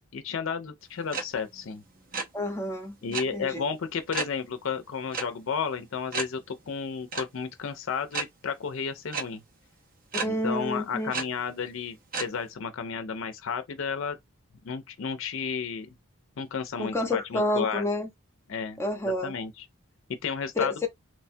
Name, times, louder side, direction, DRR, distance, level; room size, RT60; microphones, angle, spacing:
voice 1, 0.1-1.8 3.0-9.4 10.2-14.2 14.6-15.9 16.4-17.8 18.5-18.8 19.2-19.6 20.2-20.9, left 6 dB, 60° left, 0.4 m, -32 dB
sound 1, 1.1-1.2 1.5-2.2 3.1-3.2 4.1-4.3 5.1-5.2 5.6-5.7 6.1-6.2 7.1-7.2 8.1-8.2 9.1-9.2 10.1-10.3 11.1-11.2 12.1-12.3, right 4 dB, 40° right, 0.5 m, -30 dB
voice 2, 2.3-3.6 10.2-11.1 16.8-18.1 18.8-19.3 20.6-20.9, left 1 dB, 10° left, 0.6 m, -29 dB
3.1 x 2.2 x 2.6 m
head